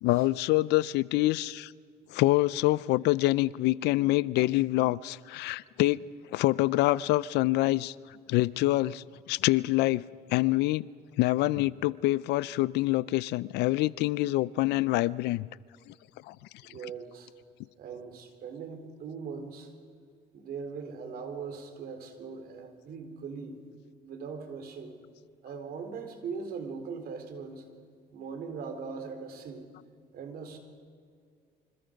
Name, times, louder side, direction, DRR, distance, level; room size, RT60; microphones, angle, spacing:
voice 1, 0.0-1.7 2.1-6.0 6.3-7.9 8.3-10.0 10.3-10.9 11.2-15.5 15.9-16.0 16.3-16.4, left 18 dB, 85° left, 0.5 m, -26 dB
voice 2, 16.6-17.3 17.8-19.7 20.3-23.6 24.0-25.0 25.4-27.6 28.1-29.6 30.1-30.6, right 5 dB, 65° right, 4.0 m, -40 dB
27.0 x 26.0 x 5.3 m
cardioid pair, 110°, 17 cm